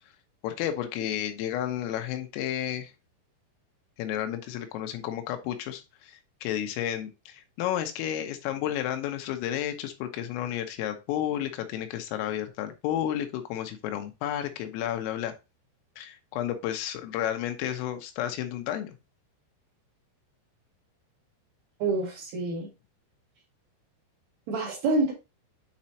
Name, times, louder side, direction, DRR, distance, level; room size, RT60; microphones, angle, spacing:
voice 1, 0.4-2.9 4.0-15.3 16.0-19.0, left 11 dB, 90° left, 6 dB, 3.6 m, -32 dB
voice 2, 21.8-22.7 24.5-25.1, right 3 dB, 50° right, 0 dB, 2.3 m, -27 dB
8.7 x 4.3 x 2.8 m, 0.25 s
omnidirectional pair, 5.8 m